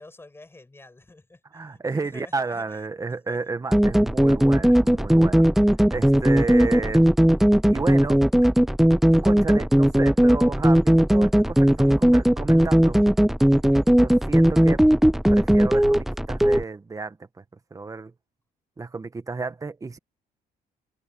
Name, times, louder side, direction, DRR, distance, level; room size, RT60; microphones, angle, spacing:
voice 1, 0.0-2.9 3.3-3.4, left 2 dB, 15° left, 7.8 m, -48 dB
voice 2, 1.5-5.4 5.9-7.1 7.7-8.2 9.2-13.0 13.9-14.8 15.3-17.4 17.7-18.1 18.8-20.0, right 4 dB, 20° right, 1.6 m, -32 dB
sound 1, 3.7-16.6, equal, ahead, 0.3 m, -18 dB
cardioid pair, 110°, 17 cm